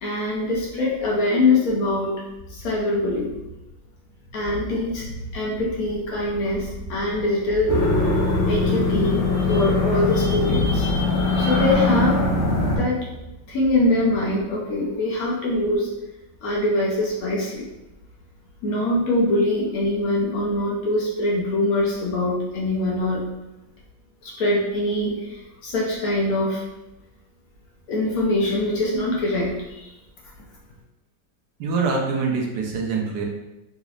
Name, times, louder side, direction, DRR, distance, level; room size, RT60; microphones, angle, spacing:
voice 1, 0.0-2.1 2.5-3.3 4.3-8.1 8.5-12.2 12.8-13.1 13.5-15.9 16.4-17.7 18.6-23.2 24.2-26.6 27.9-29.9, left 1 dB, 65° left, -4 dB, 1.0 m, -23 dB
sound 1, 7.7-12.8, left 3 dB, 90° left, 0.4 m, -21 dB
voice 2, 31.6-33.2, right 4 dB, 75° right, 0 dB, 1.2 m, -24 dB
4.0 x 3.0 x 2.4 m, 0.98 s
omnidirectional pair, 1.9 m